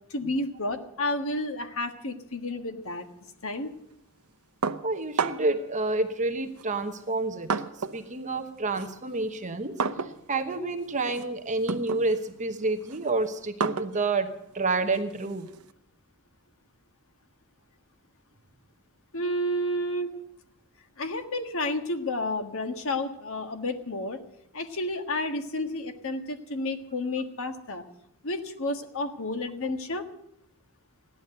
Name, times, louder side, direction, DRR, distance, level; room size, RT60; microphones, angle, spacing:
voice 1, 0.1-3.1 3.4-3.7 19.1-20.1 21.0-24.2 24.5-27.8 28.2-30.1, left 1 dB, 65° left, 6 dB, 1.6 m, -31 dB
sound 1, 4.6-5.6 6.5-8.1 8.4-15.7, right 5 dB, 80° right, 0.8 m, -34 dB
voice 2, 4.8-7.5 7.9-9.8 10.0-15.5, right 3 dB, 35° right, 6 dB, 1.0 m, -29 dB
16.0 x 11.0 x 7.9 m, 0.79 s
head